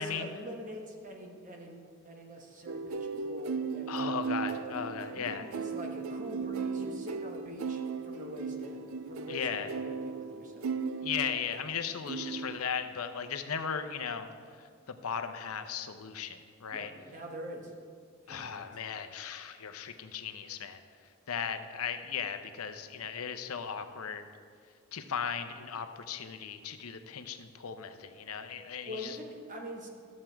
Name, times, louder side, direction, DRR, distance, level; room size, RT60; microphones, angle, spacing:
voice 1, 0.0-1.8 2.0-4.6 5.1-10.7 16.7-17.7 18.3-18.7 28.9-29.9, equal, 35° right, 1 dB, 1.2 m, -44 dB
sound 1, 2.7-11.7 12.1-12.6, right 5 dB, 70° right, 0.4 m, -36 dB
voice 2, 3.9-5.4 9.3-9.7 11.0-14.3 14.9-16.9 18.3-20.8 21.3-24.2 24.9-29.2, left 7 dB, 80° left, 9 dB, 0.7 m, -37 dB
13.0 x 7.4 x 4.5 m, 2.1 s
head